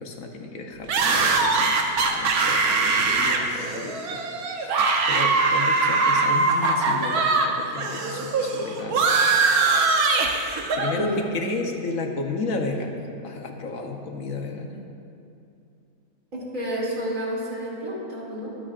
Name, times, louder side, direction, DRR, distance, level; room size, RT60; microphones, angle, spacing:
voice 1, 0.0-4.2 4.5-9.1 10.3-14.8, left 3 dB, 70° left, 3 dB, 1.3 m, -33 dB
sound 1, 0.9-7.5 7.7-10.9, right 3 dB, 90° right, 1.4 m, -22 dB
voice 2, 16.3-18.6, equal, 65° right, -6 dB, 3.1 m, -30 dB
23.5 x 8.7 x 2.5 m, 2.6 s
omnidirectional pair, 1.5 m